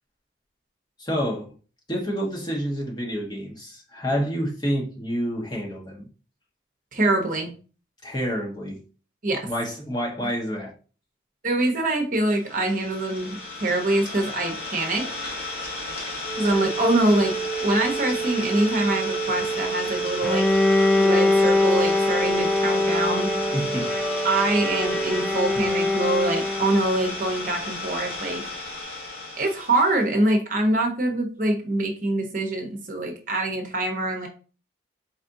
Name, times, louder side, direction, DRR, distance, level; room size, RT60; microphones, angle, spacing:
voice 1, 1.0-1.5 1.9-6.1 8.0-8.8 9.4-10.7 23.5-23.9, equal, 20° left, -3 dB, 1.2 m, -28 dB
voice 2, 6.9-7.5 9.2-9.4 10.2-10.3 11.4-15.0 16.4-20.4 21.0-23.3 24.2-28.4 29.4-34.3, right 2 dB, 45° right, 3 dB, 0.9 m, -24 dB
Idling, 12.3-30.0, left 2 dB, 85° left, 2.2 m, -33 dB
Wind instrument woodwind instrument, 16.2-25.3, right 6 dB, 45° left, 2.3 m, -30 dB
Bowed string instrument, 20.2-27.0, left 2 dB, 5° left, 0.3 m, -23 dB
4.3 x 4.1 x 2.6 m, 0.37 s
head